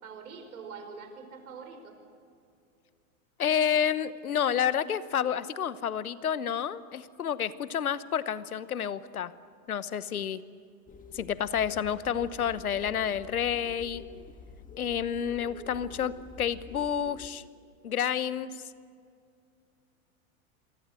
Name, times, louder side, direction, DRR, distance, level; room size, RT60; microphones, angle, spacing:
voice 1, 0.0-2.0, right 5 dB, 75° right, 6 dB, 4.8 m, -44 dB
voice 2, 3.4-9.3 9.7-10.4 11.1-14.0 14.8-17.4 17.8-18.5, left 8 dB, 80° left, 16 dB, 1.1 m, -29 dB
sound 1, 10.9-17.3, left 4 dB, 20° left, 1.9 m, -48 dB
28.0 x 23.5 x 7.8 m, 2.3 s
hypercardioid pair, 95°, 43 cm